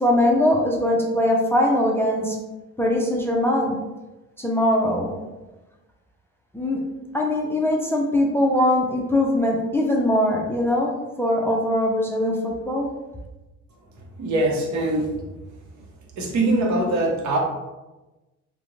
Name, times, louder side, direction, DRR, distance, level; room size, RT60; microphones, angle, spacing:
voice 1, 0.0-2.4 2.8-3.8 4.4-5.1 6.5-6.8 7.1-12.9, left 1 dB, 10° left, -1 dB, 0.4 m, -21 dB
voice 2, 14.2-15.1 16.2-17.4, right 2 dB, 70° right, 0 dB, 0.7 m, -22 dB
2.4 x 2.1 x 3.0 m, 1.1 s
cardioid pair, 90°, 30 cm